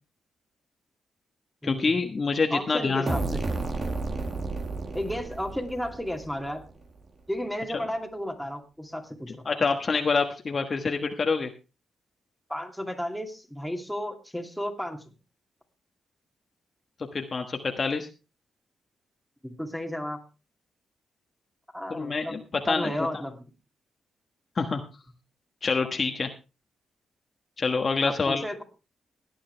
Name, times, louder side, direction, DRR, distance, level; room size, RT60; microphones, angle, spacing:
voice 1, 1.6-3.1 9.4-11.5 17.1-18.1 21.9-22.9 24.6-24.8 25.6-26.3 27.6-28.4, left 4 dB, 40° left, 4 dB, 1.3 m, -26 dB
voice 2, 2.5-3.4 4.9-6.6 7.3-9.5 12.5-15.1 19.4-20.2 21.7-22.4 22.7-23.4 28.0-28.6, equal, ahead, 3 dB, 2.5 m, -33 dB
sound 1, 3.1-6.7, right 3 dB, 40° right, 2.0 m, -32 dB
17.5 x 10.0 x 3.3 m, 0.31 s
cardioid pair, 105°, 0 cm